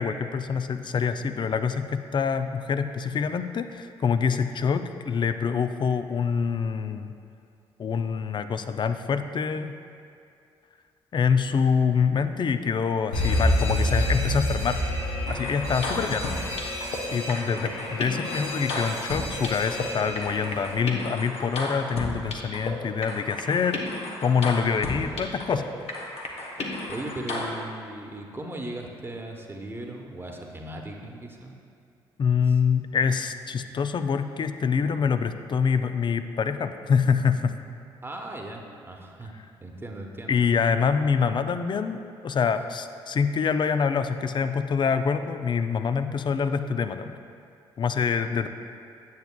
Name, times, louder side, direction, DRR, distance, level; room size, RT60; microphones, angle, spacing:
voice 1, 0.0-7.1 7.8-9.7 11.1-14.8 15.3-16.3 17.1-23.8 24.2-25.7 32.2-37.6 39.3-39.4 40.3-47.2 47.8-48.5, left 6 dB, 40° left, 10 dB, 0.4 m, -25 dB
Alarm, 13.1-20.8, left 1 dB, 90° left, 0.9 m, -29 dB
sound 1, 15.2-17.0 17.3-19.8 20.1-22.7 23.0-25.6 25.9-27.6, left 2 dB, 60° left, 1.0 m, -33 dB
voice 2, 17.4-17.8 24.9-25.4 26.9-31.5 38.0-39.3 39.6-40.5, right 1 dB, 20° right, 1 dB, 1.0 m, -38 dB
9.2 x 7.8 x 2.3 m, 2.4 s
hypercardioid pair, 50°, 12 cm